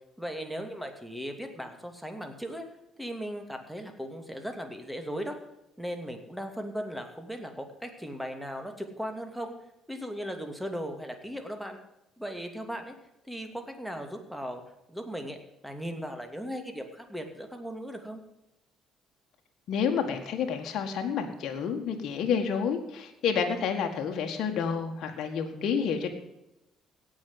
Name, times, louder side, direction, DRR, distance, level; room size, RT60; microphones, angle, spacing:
voice 1, 0.2-2.7 3.0-5.4 5.8-9.5 9.9-11.8 12.2-13.0 13.3-14.6 14.9-15.4 15.6-18.2, equal, ahead, 5 dB, 2.7 m, -37 dB
voice 2, 19.7-26.2, left 6 dB, 60° left, 3 dB, 1.7 m, -29 dB
17.0 x 6.4 x 7.9 m, 0.90 s
hypercardioid pair, 50°, 0 cm